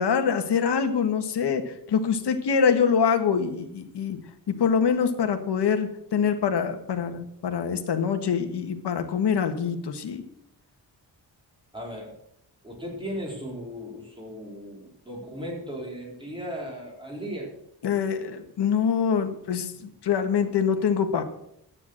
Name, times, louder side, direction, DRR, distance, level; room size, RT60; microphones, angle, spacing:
voice 1, 0.0-4.2 4.5-10.2 17.8-21.3, left 6 dB, 75° left, 7 dB, 1.7 m, -25 dB
voice 2, 11.7-12.1 12.6-17.5, equal, 10° right, -2 dB, 4.0 m, -36 dB
12.5 x 9.6 x 6.5 m, 0.75 s
wide cardioid pair, 175°, 40 cm